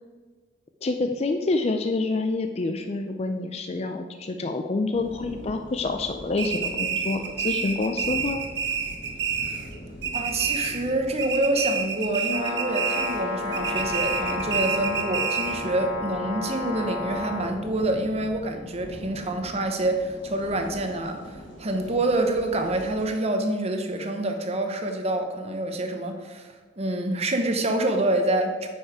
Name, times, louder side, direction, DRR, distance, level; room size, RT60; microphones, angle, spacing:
voice 1, 0.8-8.4, left 3 dB, 35° left, 6 dB, 0.4 m, -27 dB
sound 1, 4.9-23.1, equal, 80° left, 2.6 m, -43 dB
sound 2, 6.4-9.7 10.0-10.9 11.2-13.2 13.5-15.7, right 7 dB, 60° right, 1.1 m, -28 dB
voice 2, 10.1-28.7, right 1 dB, 35° right, 5 dB, 0.9 m, -27 dB
Brass instrument, 12.3-17.5, left 3 dB, 55° left, 1.5 m, -32 dB
9.1 x 5.5 x 4.8 m, 1.4 s
head